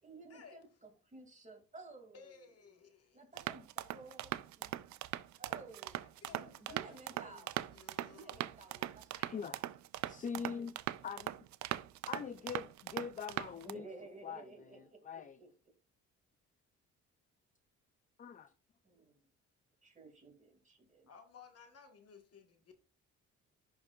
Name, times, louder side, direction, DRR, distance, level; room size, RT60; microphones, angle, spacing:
voice 1, 0.0-2.4 3.1-4.7 5.4-7.5 8.1-9.7 10.3-10.7 12.2-12.7 13.6-15.5 18.8-19.3 19.8-21.1, right 3 dB, 25° right, 2.5 m, -55 dB
voice 2, 2.1-3.2 6.0-8.4 21.1-22.7, left 6 dB, 55° left, 1.6 m, -58 dB
sound 1, 3.4-13.7, right 14 dB, 70° right, 0.5 m, -41 dB
voice 3, 9.1-9.6 10.1-10.7 11.0-11.3 12.1-13.9 14.2-15.4 18.2-18.5, left 6 dB, 25° left, 0.4 m, -43 dB
11.0 x 4.7 x 2.4 m
cardioid pair, 90°, 30 cm